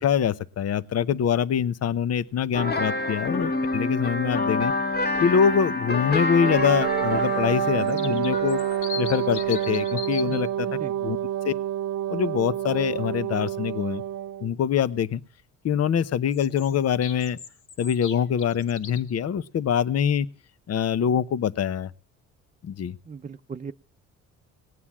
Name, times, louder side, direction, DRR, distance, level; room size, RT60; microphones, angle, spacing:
voice 1, 0.0-4.7 5.2-8.6 9.0-10.7 11.0-11.2 11.4-11.5 12.1-14.0 14.4-15.2 15.6-17.4 17.8-20.3 20.7-21.9 22.6-23.0, left 8 dB, 55° left, 1.0 m, -24 dB
sound 1, 2.5-10.2, left 2 dB, 30° left, 1.8 m, -28 dB
Wind instrument woodwind instrument, 6.4-14.5, right 11 dB, 60° right, 0.9 m, -28 dB
sound 2, 7.6-10.4 16.3-19.2, left 7 dB, 80° left, 3.2 m, -39 dB
voice 2, 23.1-23.7, right 5 dB, 25° right, 0.7 m, -37 dB
19.0 x 9.5 x 7.3 m
cardioid pair, 90°, 30 cm